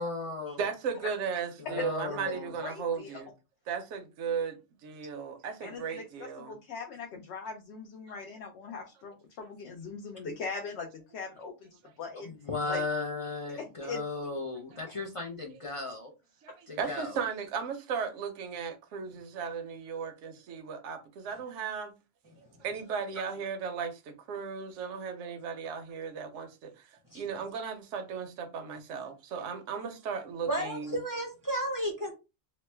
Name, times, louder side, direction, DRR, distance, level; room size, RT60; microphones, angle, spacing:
voice 1, 0.0-0.6 1.6-2.5 12.2-16.1 16.7-17.2, left 3 dB, 45° left, 0.4 m, -36 dB
voice 2, 0.6-3.3 3.7-6.5 8.1-8.2 14.7-14.8 16.4-21.9 22.6-31.0, right 6 dB, 75° right, 1.0 m, -36 dB
voice 3, 2.6-3.2 5.6-11.7 12.0-12.3 12.7-12.8 13.8-14.0, left 4 dB, 65° left, 0.8 m, -40 dB
voice 4, 30.5-32.1, right 1 dB, 20° right, 0.6 m, -32 dB
3.0 x 2.1 x 3.2 m
omnidirectional pair, 1.3 m